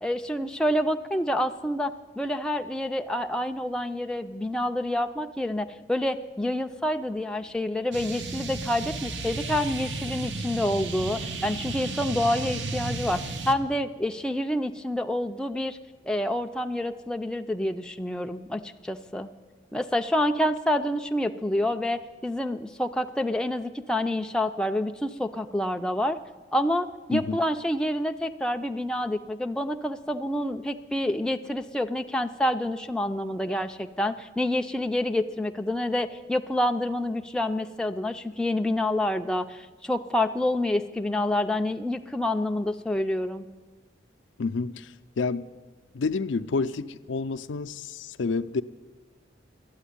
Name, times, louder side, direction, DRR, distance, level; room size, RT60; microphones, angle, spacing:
voice 1, 0.0-15.8 16.1-19.3 19.7-26.2 26.5-43.4, left 1 dB, 5° left, 0.4 m, -28 dB
sound 1, 7.9-13.5, right 3 dB, 75° right, 0.9 m, -33 dB
voice 2, 44.4-45.5 45.9-48.6, left 4 dB, 80° left, 0.5 m, -29 dB
12.0 x 8.8 x 10.0 m
head